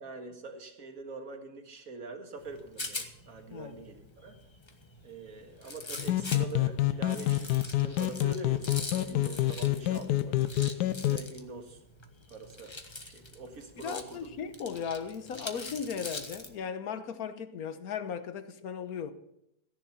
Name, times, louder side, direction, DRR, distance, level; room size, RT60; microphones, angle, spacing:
voice 1, 0.0-4.4 5.0-10.4 10.8-11.8 12.3-12.7 13.0-14.3, right 3 dB, 60° right, 2.1 m, -44 dB
Rattle, 2.4-16.5, left 2 dB, 20° left, 1.0 m, -44 dB
sound 1, 6.0-11.2, left 14 dB, 90° left, 1.3 m, -28 dB
voice 2, 13.8-19.1, left 7 dB, 65° left, 1.4 m, -37 dB
15.0 x 10.5 x 5.7 m
omnidirectional pair, 1.7 m